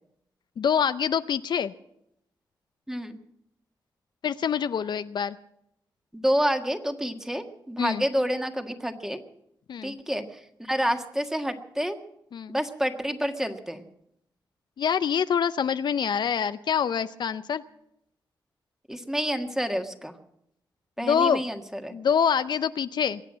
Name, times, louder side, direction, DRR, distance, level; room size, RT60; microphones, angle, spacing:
voice 1, 0.6-1.7 4.2-5.4 7.8-8.0 9.7-10.0 12.3-12.6 14.8-17.6 21.0-21.4 21.9-23.2, left 7 dB, 70° left, 13 dB, 0.6 m, -25 dB
voice 2, 2.9-3.2 6.1-9.2 9.8-12.0 12.5-13.8 18.9-20.1 21.0-22.0, equal, 5° right, 6 dB, 1.6 m, -28 dB
22.5 x 8.3 x 7.4 m, 0.77 s
cardioid pair, 85°, 8 cm